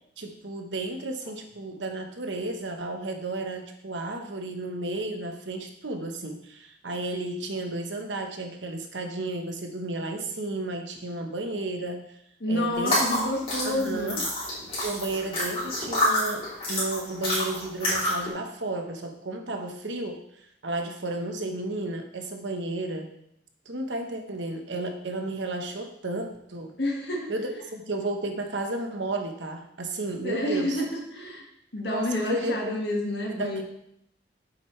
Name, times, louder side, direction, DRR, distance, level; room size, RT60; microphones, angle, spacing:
voice 1, 0.2-12.2 12.5-13.0 13.6-14.3 14.8-23.1 23.6-26.7 27.3-30.8 31.9-32.6 33.3-33.6, right 2 dB, 85° right, 4 dB, 1.2 m, -33 dB
voice 2, 12.4-14.2 26.8-27.3 30.2-31.4 31.7-33.6, left 1 dB, 70° left, 0 dB, 1.8 m, -29 dB
sound 1, 12.8-18.3, left 1 dB, 30° left, 3.4 m, -28 dB
9.1 x 7.1 x 3.3 m, 0.75 s
head